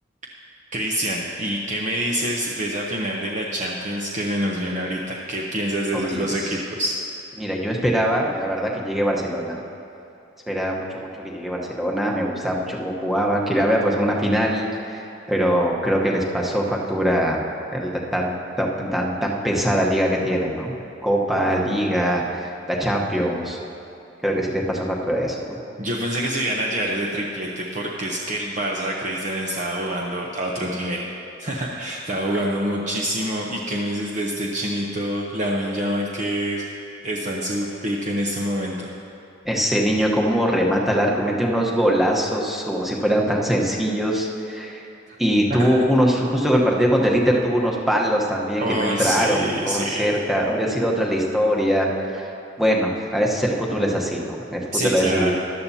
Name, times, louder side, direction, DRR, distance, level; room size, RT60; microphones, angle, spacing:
voice 1, 0.7-7.0 25.8-31.1 31.4-36.6 37.0-38.9 45.5-45.7 48.6-50.2 54.7-55.3, right 1 dB, 40° right, -3 dB, 0.8 m, -26 dB
voice 2, 5.9-6.6 7.4-9.6 10.5-17.4 17.7-20.7 21.0-23.6 24.2-25.6 39.4-44.8 45.2-52.3 52.6-55.3, equal, ahead, -2 dB, 1.0 m, -22 dB
14.0 x 11.5 x 2.8 m, 2.9 s
head